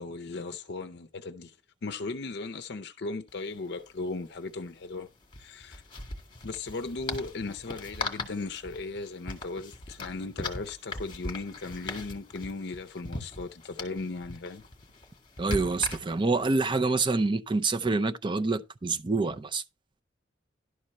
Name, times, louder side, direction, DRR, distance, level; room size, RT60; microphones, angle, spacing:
voice 1, 0.0-1.6 1.8-5.1 5.4-5.8 6.4-14.6, left 3 dB, 60° left, 0.6 m, -37 dB
sound 1, 3.3-3.4 3.6-3.8 5.2-16.4, left 2 dB, 25° left, 1.9 m, -39 dB
voice 2, 15.4-19.6, right 3 dB, 25° right, 0.5 m, -27 dB
11.5 x 4.3 x 6.4 m
head